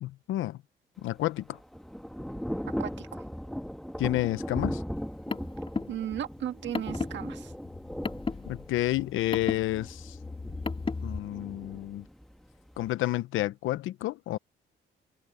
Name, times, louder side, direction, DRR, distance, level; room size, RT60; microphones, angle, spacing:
voice 1, 0.0-0.6 1.0-1.6 4.0-4.8 8.5-10.2 11.0-12.1 12.8-14.4, left 15 dB, 85° left, 0.9 m, -30 dB
Thunder / Rain, 1.0-12.9, equal, ahead, 1.7 m, -38 dB
voice 2, 2.8-3.2 5.9-7.5, right 10 dB, 65° right, 1.6 m, -35 dB
Car, 5.0-11.2, left 4 dB, 25° left, 2.4 m, -36 dB
cardioid pair, 90°, 20 cm